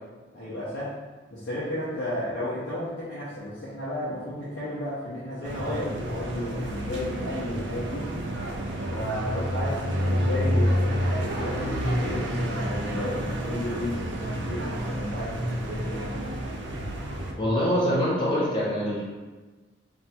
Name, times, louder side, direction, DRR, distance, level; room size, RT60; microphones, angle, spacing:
voice 1, 0.3-0.9 1.3-8.1 8.9-16.2, left 1 dB, 75° left, -10 dB, 0.8 m, -33 dB
sound 1, 5.4-17.3, equal, 75° right, 0.5 m, -29 dB
voice 2, 17.4-19.0, equal, 25° left, -6 dB, 0.8 m, -24 dB
2.7 x 2.3 x 4.1 m, 1.3 s
head